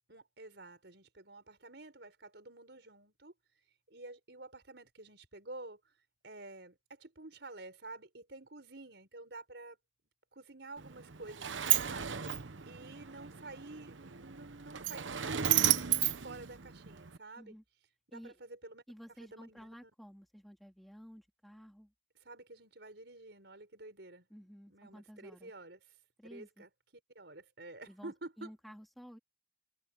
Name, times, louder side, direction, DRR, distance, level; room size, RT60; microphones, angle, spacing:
voice 1, 0.1-3.3 3.9-5.9 6.2-9.8 10.3-15.9 16.2-17.6 18.1-18.8 19.2-19.9 22.2-25.8 26.2-26.7 27.1-28.5, right 2 dB, 65° right, 4.7 m, -50 dB
Sliding door, 10.8-17.2, right 11 dB, 85° right, 0.9 m, -33 dB
voice 2, 18.9-21.9 24.3-25.5 26.2-26.6 27.9-29.2, equal, ahead, 2.7 m, -53 dB
head